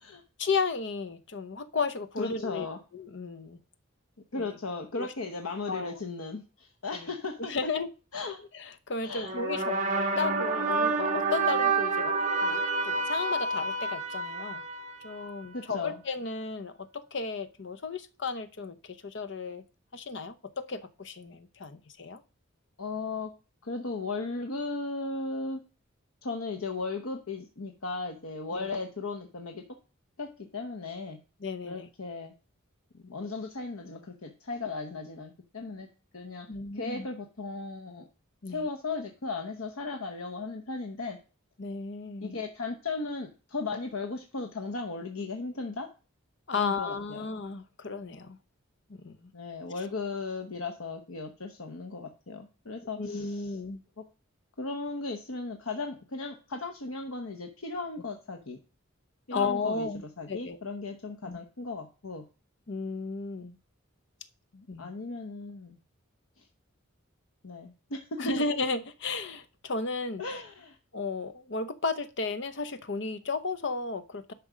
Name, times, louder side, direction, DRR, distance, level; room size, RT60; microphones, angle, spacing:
voice 1, 0.4-2.7 2.9-3.6 4.3-4.5 5.0-5.1 5.7-5.9 6.9-7.1 7.4-7.9 8.5-9.8 10.2-12.2 12.4-14.6 15.0-19.6 19.9-22.2 28.5-28.7 31.4-31.9 36.5-37.1 38.4-38.6 41.6-42.4 46.5-48.4 48.9-49.3 53.0-53.8 59.3-60.0 60.3-60.6 61.3-61.4 62.7-63.6 64.7-64.9 68.2-70.2 70.9-74.3, left 4 dB, 55° left, 12 dB, 0.8 m, -34 dB
voice 2, 2.2-2.8 4.3-7.5 8.1-8.4 9.0-9.4 15.5-16.0 22.8-23.3 23.6-25.6 26.2-29.6 30.2-31.2 31.6-32.3 32.9-35.9 36.1-36.5 36.7-38.0 38.5-41.2 42.2-45.9 46.5-47.2 49.3-53.5 54.0-54.1 54.6-58.6 59.3-59.9 60.2-62.2 64.5-65.8 66.4-66.5 67.4-68.4 70.2-70.8, left 3 dB, 85° left, 4 dB, 1.0 m, -36 dB
sound 1, 9.2-15.6, right 3 dB, 35° right, 1.5 m, -29 dB
10.5 x 6.0 x 5.1 m, 0.35 s
head